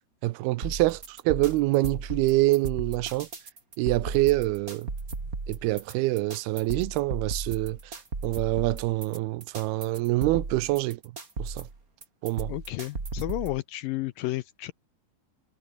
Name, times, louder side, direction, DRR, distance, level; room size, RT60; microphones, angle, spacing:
voice 1, 0.2-3.3 3.8-4.9 5.5-7.8 8.2-11.0 11.4-11.6 12.2-12.5, right 19 dB, 85° right, 2.6 m, -26 dB
sound 1, 0.6-13.6, right 3 dB, 25° right, 3.2 m, -36 dB
voice 2, 12.5-14.7, left 18 dB, 85° left, 2.1 m, -32 dB
omnidirectional pair, 4.5 m